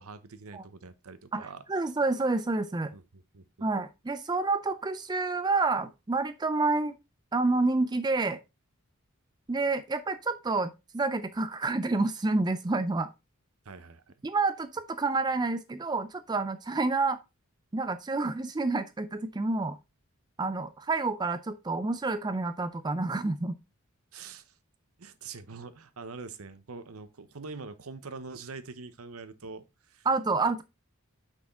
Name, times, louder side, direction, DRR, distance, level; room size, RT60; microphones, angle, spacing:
voice 1, 0.0-1.6 2.9-3.7 13.6-14.1 24.1-24.5 25.0-30.1, right 4 dB, 85° right, 0.9 m, -44 dB
voice 2, 1.3-2.9 3.6-7.0 7.3-8.4 9.5-13.1 14.2-17.2 17.7-19.8 20.4-23.5 30.1-30.6, right 3 dB, 20° right, 0.4 m, -29 dB
6.4 x 5.8 x 3.6 m
head